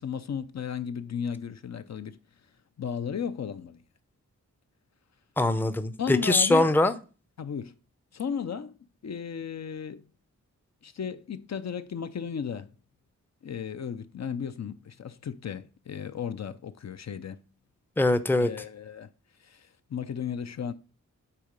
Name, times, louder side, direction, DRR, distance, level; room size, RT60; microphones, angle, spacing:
voice 1, 0.0-2.2 2.8-3.8 6.0-6.7 7.4-7.7 8.1-8.8 9.0-10.0 10.8-12.7 13.4-17.4 18.4-19.1 19.4-20.7, left 7 dB, 60° left, 0.6 m, -34 dB
voice 2, 5.4-6.9 18.0-18.5, left 2 dB, 5° left, 0.5 m, -22 dB
8.4 x 3.9 x 5.1 m
wide cardioid pair, 90°, 31 cm